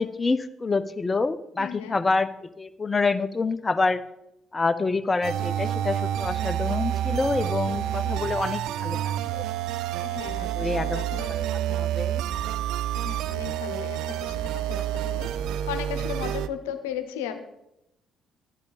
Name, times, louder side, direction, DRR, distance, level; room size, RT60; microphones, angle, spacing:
voice 1, 0.0-4.0 4.5-9.4 10.6-11.0 11.3-11.4 11.7-12.2, left 3 dB, 30° left, 13 dB, 0.7 m, -27 dB
voice 2, 1.6-2.0 8.0-8.2 10.0-11.8 12.9-15.3 15.7-17.4, left 9 dB, 80° left, 8 dB, 0.9 m, -36 dB
sound 1, 5.2-16.5, right 11 dB, 70° right, 0.4 m, -28 dB
11.0 x 10.5 x 4.1 m, 0.84 s
hypercardioid pair, 50°, 0 cm